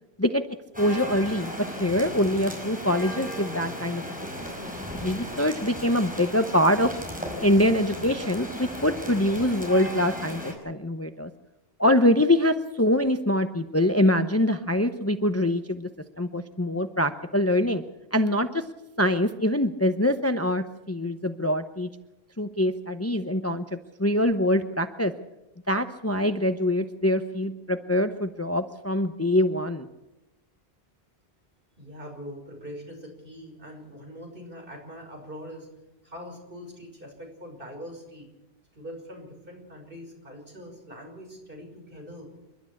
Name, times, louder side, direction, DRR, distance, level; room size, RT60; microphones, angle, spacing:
sound 1, 0.7-10.5, equal, 10° right, 5.2 m, -36 dB
voice 1, 0.8-1.5 1.8-4.0 4.4-6.9 7.4-11.3 11.8-15.9 16.2-17.8 18.1-18.6 19.0-21.9 22.4-25.1 25.7-29.9, left 1 dB, 15° left, 9 dB, 0.8 m, -24 dB
voice 2, 31.8-35.7 36.0-38.3 38.7-42.3, equal, 60° right, 2 dB, 6.1 m, -42 dB
28.0 x 12.5 x 8.5 m, 0.96 s
omnidirectional pair, 1.1 m